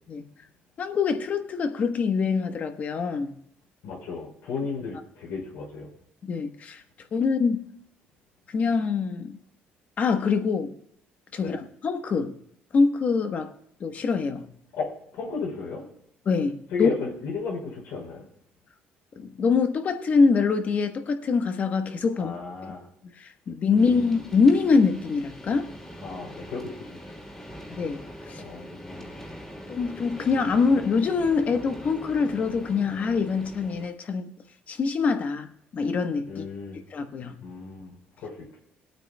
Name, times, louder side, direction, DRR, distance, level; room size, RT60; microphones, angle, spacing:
voice 1, 0.8-3.3 6.2-6.8 7.1-7.6 8.5-9.4 10.0-10.7 11.3-12.3 12.7-13.5 13.8-14.5 16.2-16.9 19.2-22.3 22.6-22.7 23.2-25.7 27.7-28.4 29.7-34.3 34.7-35.5 35.7-36.5 36.9-37.4, left 5 dB, 45° left, 7 dB, 1.2 m, -24 dB
voice 2, 3.8-5.9 11.4-11.6 14.7-15.9 16.7-18.3 22.2-22.8 23.7-24.1 26.0-26.9 28.4-29.1 36.3-36.8 37.4-38.6, left 4 dB, 85° left, -3 dB, 4.4 m, -34 dB
sound 1, 23.8-33.9, equal, 15° left, 2.9 m, -42 dB
23.5 x 8.9 x 2.3 m, 0.70 s
cardioid pair, 120°, 4 cm